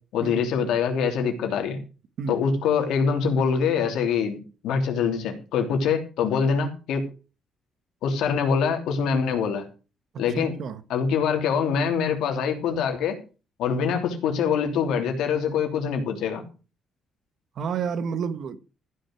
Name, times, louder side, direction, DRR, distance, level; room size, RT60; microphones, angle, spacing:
voice 1, 0.1-1.8 2.3-4.4 4.6-7.0 8.0-9.6 10.2-10.5 10.9-13.2 13.6-16.4, left 6 dB, 80° left, 3.1 m, -24 dB
voice 2, 10.1-10.8 17.6-18.6, right 6 dB, 60° right, 1.4 m, -30 dB
14.5 x 6.4 x 6.1 m
cardioid pair, 95°, 0 cm